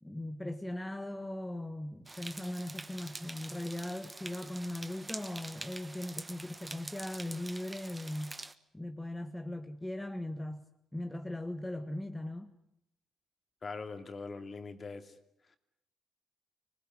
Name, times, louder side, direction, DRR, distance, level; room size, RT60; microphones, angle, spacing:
voice 1, 0.0-8.4 8.7-10.6 10.9-12.5, left 1 dB, 10° left, 6 dB, 1.5 m, -39 dB
sound 1, 2.1-8.5, right 2 dB, 15° right, 1.4 m, -46 dB
voice 2, 13.6-15.1 15.5-15.6, left 4 dB, 35° left, 7 dB, 2.7 m, -42 dB
25.5 x 19.5 x 9.6 m, 0.77 s
cardioid pair, 90°, 0 cm